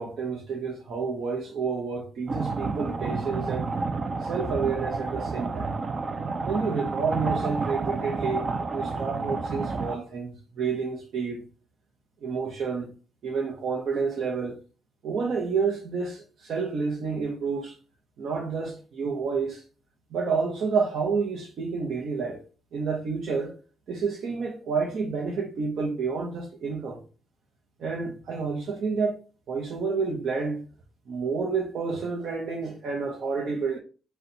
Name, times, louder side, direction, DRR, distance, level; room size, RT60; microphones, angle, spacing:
voice 1, 0.0-3.7 4.2-5.7 6.4-11.4 12.2-12.9 13.2-14.6 15.0-17.8 18.2-19.6 20.1-22.4 22.7-23.6 23.9-27.0 27.8-29.2 29.5-30.6 31.1-33.8, right 5 dB, 70° right, 0.8 m, -29 dB
sound 1, 2.3-10.0, right 3 dB, 40° right, 0.4 m, -30 dB
4.3 x 2.3 x 3.9 m
wide cardioid pair, 150°, 0 cm